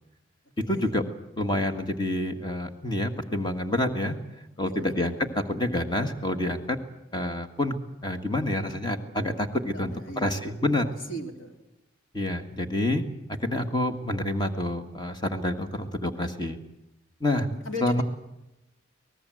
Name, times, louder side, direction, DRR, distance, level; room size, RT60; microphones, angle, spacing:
voice 1, 0.7-1.0 1.4-4.2 4.6-6.8 7.1-7.8 8.0-10.9 12.1-13.1 13.4-16.6 17.2-17.5 17.8-18.0, left 1 dB, 20° left, 6 dB, 1.7 m, -28 dB
voice 2, 4.6-4.9 9.7-10.4 10.8-11.5 17.5-18.0, left 1 dB, 85° left, 4 dB, 3.3 m, -38 dB
24.0 x 19.0 x 7.7 m, 0.92 s
head